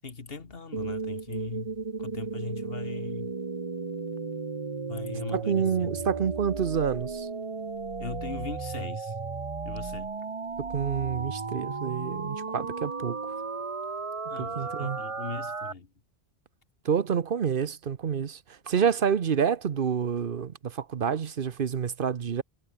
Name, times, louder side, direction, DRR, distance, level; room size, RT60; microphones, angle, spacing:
voice 1, 0.0-3.3 4.9-6.0 8.0-9.1 9.6-10.1 14.3-15.9, left 4 dB, 65° left, 2.1 m, -39 dB
sound 1, 0.7-15.7, right 4 dB, 35° right, 1.1 m, -35 dB
voice 2, 5.3-7.3 10.6-13.2 14.4-15.0 16.8-22.4, right 7 dB, 60° right, 1.0 m, -28 dB
omnidirectional pair, 1.1 m